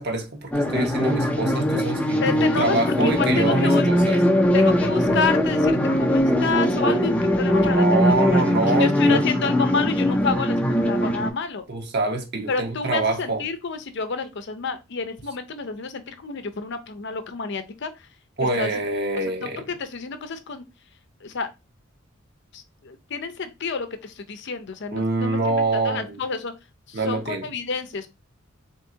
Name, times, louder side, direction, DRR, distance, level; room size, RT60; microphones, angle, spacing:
voice 1, 0.0-4.2 7.4-9.2 10.8-11.1 11.7-13.4 18.4-19.6 24.9-26.2 26.9-27.5, right 2 dB, 55° right, 1.1 m, -25 dB
sound 1, 0.5-11.3, left 1 dB, 5° left, 0.6 m, -21 dB
voice 2, 2.2-3.9 4.5-7.8 8.3-11.6 12.5-18.1 18.6-18.7 19.4-20.7 21.2-21.5 22.5-26.5 26.9-28.1, left 5 dB, 60° left, 0.6 m, -29 dB
3.7 x 2.9 x 3.8 m
head